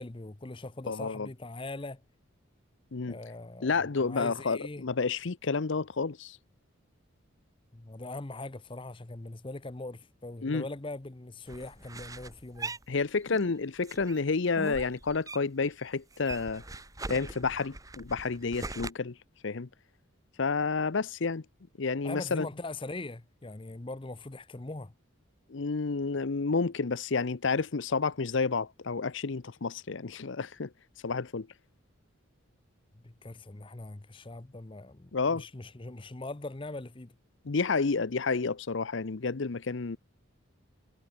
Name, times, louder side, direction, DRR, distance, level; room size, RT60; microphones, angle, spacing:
voice 1, 0.0-2.0 3.1-4.8 7.7-12.8 22.0-24.9 33.0-37.1, left 2 dB, 25° left, 0.7 m, -41 dB
voice 2, 0.9-1.3 2.9-3.2 3.6-6.4 10.4-10.7 12.9-16.6 17.1-19.1 19.4-19.7 20.4-21.4 21.8-22.5 25.5-30.7 31.0-31.5 35.1-35.4 37.4-40.0, left 4 dB, 65° left, 0.7 m, -30 dB
sound 1, 11.5-13.5 13.8-15.7 15.9-18.9, right 2 dB, 15° right, 1.7 m, -41 dB
head